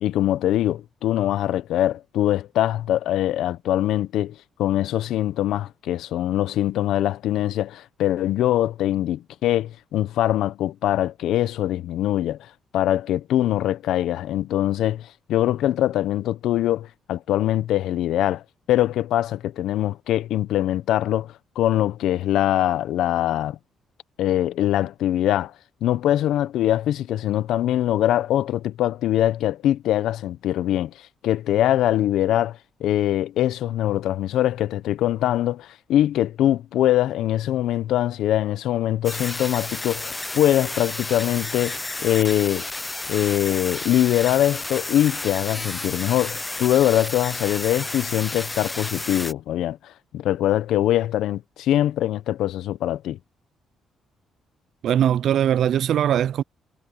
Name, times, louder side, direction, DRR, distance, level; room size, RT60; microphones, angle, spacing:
voice 1, 0.0-12.5 12.7-23.6 24.2-25.5 25.8-42.7 43.1-53.2, left 12 dB, 80° left, 0.8 m, -23 dB
sound 1, 39.0-49.3, left 2 dB, 15° left, 0.5 m, -32 dB
voice 2, 54.8-56.4, right 10 dB, 70° right, 0.4 m, -20 dB
cardioid pair, 90°, 0 cm